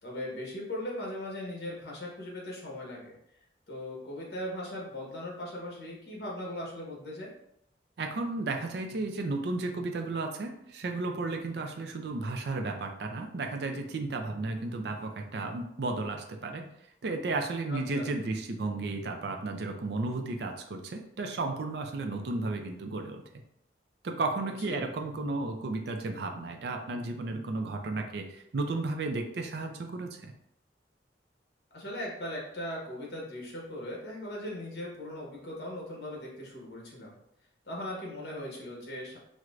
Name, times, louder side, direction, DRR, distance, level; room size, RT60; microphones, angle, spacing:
voice 1, 0.0-3.2 3.7-7.3 17.7-18.1 24.7-24.8 31.7-37.1 37.6-39.2, left 1 dB, 60° left, -3 dB, 1.1 m, -39 dB
voice 2, 8.0-16.7 17.0-23.2 24.0-30.3, right 3 dB, 65° right, 4 dB, 0.4 m, -33 dB
4.5 x 2.1 x 2.4 m, 0.75 s
head